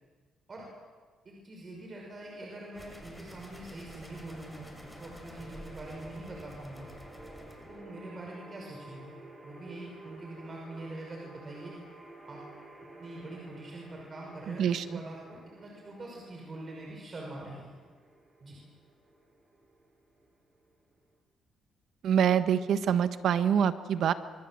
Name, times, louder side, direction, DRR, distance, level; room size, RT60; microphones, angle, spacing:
voice 1, 1.2-6.9 7.7-9.1 9.4-11.7 12.3-12.4 13.0-17.8 18.4-18.6, right 2 dB, 35° right, -1 dB, 6.0 m, -44 dB
sound 1, 2.2-21.2, right 2 dB, 20° right, 6.9 m, -52 dB
sound 2, 2.7-7.8, left 1 dB, 10° left, 5.3 m, -49 dB
voice 2, 14.5-15.0 22.0-24.1, right 8 dB, 70° right, 11 dB, 1.4 m, -26 dB
24.5 x 23.5 x 7.7 m, 1.4 s
cardioid pair, 90°, 0 cm